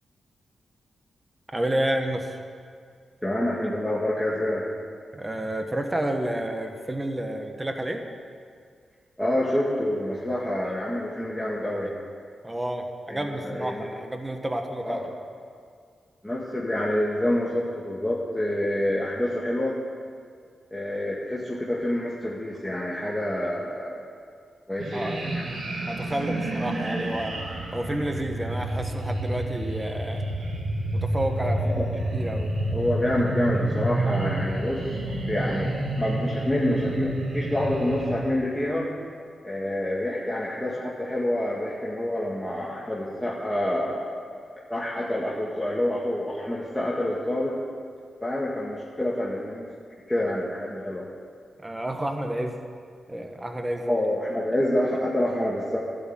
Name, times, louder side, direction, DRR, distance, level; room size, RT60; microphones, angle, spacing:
voice 1, 1.5-2.4 5.1-8.0 12.4-15.0 24.9-25.3 25.9-27.3 27.7-30.3 30.9-31.8 32.1-32.5 51.6-52.6 53.1-54.0, right 1 dB, 20° right, 4 dB, 1.5 m, -30 dB
voice 2, 3.2-4.6 9.2-11.9 13.1-13.8 14.8-15.1 16.2-19.8 20.7-24.0 24.7-25.5 31.6-31.8 32.7-35.0 35.3-35.7 36.0-38.9 39.4-44.4 44.7-47.6 48.2-49.7 50.1-51.1 53.9-55.8, left 1 dB, 5° left, -6 dB, 2.0 m, -27 dB
sound 1, 24.8-38.3, right 1 dB, 75° right, 2.2 m, -29 dB
12.5 x 6.9 x 9.2 m, 2.2 s
cardioid pair, 55°, 0 cm